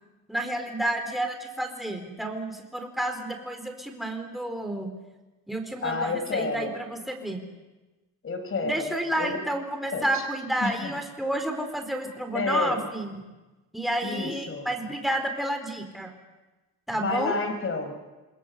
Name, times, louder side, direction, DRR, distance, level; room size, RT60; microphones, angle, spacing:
voice 1, 0.3-4.9 5.5-7.5 8.6-13.2 13.7-16.1 16.9-17.4, right 1 dB, ahead, 4 dB, 4.3 m, -30 dB
voice 2, 5.8-6.7 8.2-8.9 9.2-9.4 9.9-10.2 10.6-10.9 12.3-12.8 14.0-14.7 16.9-18.0, left 3 dB, 40° left, 7 dB, 4.6 m, -29 dB
28.5 x 20.5 x 8.3 m, 1.1 s
cardioid pair, 115°, 34 cm